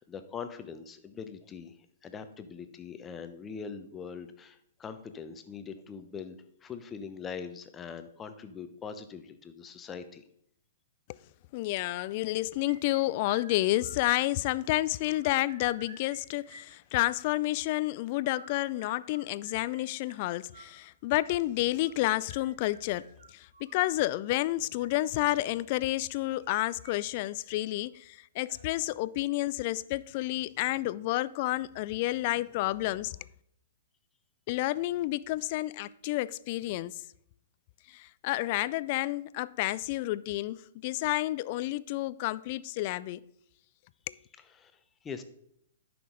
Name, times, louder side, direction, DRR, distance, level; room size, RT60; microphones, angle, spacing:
voice 1, 0.0-1.8 2.0-10.2 44.6-45.2, left 6 dB, 20° left, 0.8 m, -42 dB
voice 2, 11.5-23.1 23.3-33.2 34.5-37.0 37.9-43.2 44.1-44.2, left 17 dB, 45° left, 0.3 m, -30 dB
sound 1, 12.7-14.6 14.9-16.2 16.4-17.5 18.2-23.8 24.6-24.9 26.1-26.9 27.2-27.3 27.7-27.8 28.4-28.8, right 3 dB, 70° right, 1.7 m, -54 dB
11.0 x 6.0 x 3.9 m
hypercardioid pair, 120°, 0 cm